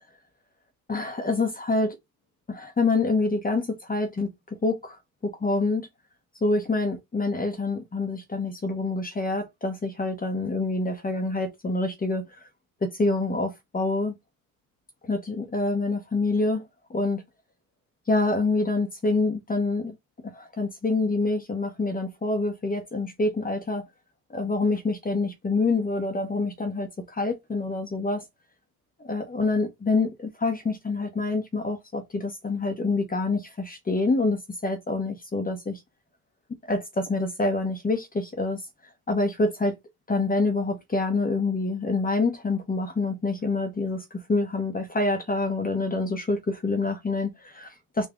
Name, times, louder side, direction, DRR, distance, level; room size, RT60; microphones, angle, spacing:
voice 1, 0.9-2.0 2.5-4.3 4.6-5.0 5.2-5.9 6.4-12.4 12.8-14.1 15.0-17.2 18.1-19.9 20.2-23.8 24.3-28.3 29.0-35.8 36.7-38.6 39.1-39.7 40.1-48.1, left 3 dB, 20° left, 1.0 m, -26 dB
3.8 x 2.6 x 3.5 m
supercardioid pair, 85°, 43 cm